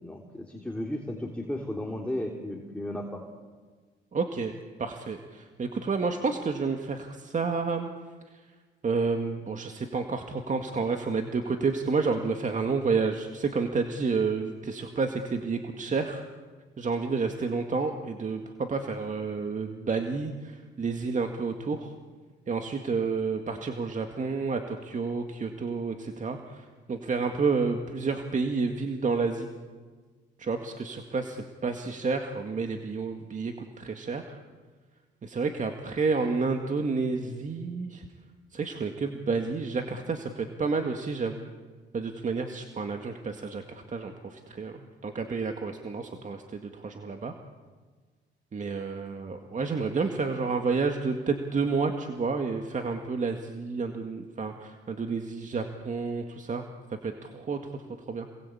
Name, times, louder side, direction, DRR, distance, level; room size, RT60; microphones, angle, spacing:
voice 1, 0.0-3.2, left 1 dB, 5° left, 0 dB, 3.4 m, -34 dB
voice 2, 4.1-4.5 4.8-7.9 8.3-8.4 8.8-16.2 16.8-21.9 22.5-29.5 30.4-34.4 35.2-38.1 38.5-41.5 41.9-47.3 48.5-56.7 57.0-57.8 58.1-58.3, right 4 dB, 40° right, 5 dB, 2.0 m, -30 dB
27.5 x 20.5 x 8.6 m, 1.4 s
cardioid pair, 90°, 20 cm